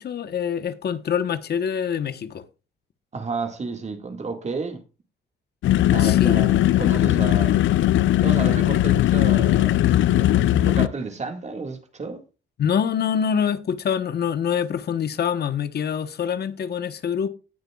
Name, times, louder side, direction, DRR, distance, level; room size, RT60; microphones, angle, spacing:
voice 1, 0.0-2.4 6.0-6.4 12.6-17.3, left 8 dB, 55° left, 1.2 m, -25 dB
voice 2, 3.1-4.8 5.9-7.6 8.2-12.2, right 4 dB, 35° right, 1.9 m, -32 dB
sound 1, 5.6-10.9, left 13 dB, 75° left, 0.5 m, -18 dB
18.0 x 6.7 x 2.4 m
cardioid pair, 90°, 20 cm